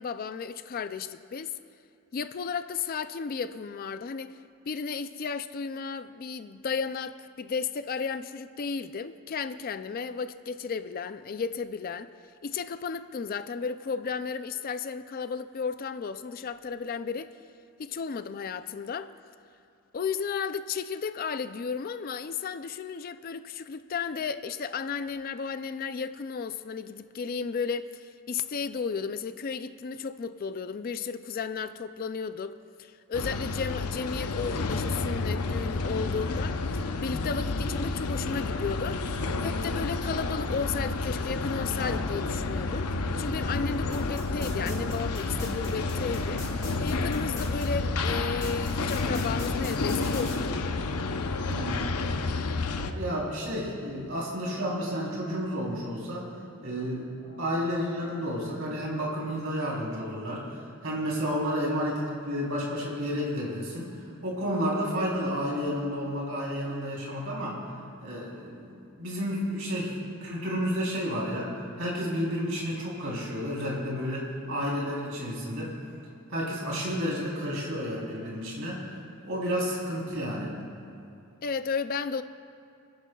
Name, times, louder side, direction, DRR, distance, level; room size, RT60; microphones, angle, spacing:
voice 1, 0.0-1.5 2.1-4.4 4.6-12.1 12.4-17.3 17.8-19.1 19.9-42.9 43.2-46.4 46.8-50.6 52.8-53.0 57.3-57.4 79.2-79.3 81.4-82.2, left 5 dB, 40° left, 0.3 m, -34 dB
sound 1, 33.1-52.9, left 3 dB, 90° left, 0.7 m, -30 dB
sound 2, 43.9-47.7 48.4-50.4, left 1 dB, 15° left, 2.2 m, -39 dB
voice 2, 51.5-51.9 52.8-56.3 56.6-57.1 57.4-60.4 60.8-63.9 64.2-67.6 68.0-75.7 76.3-78.8 79.2-80.6, equal, 60° right, 3.5 m, -31 dB
29.5 x 10.5 x 2.3 m
head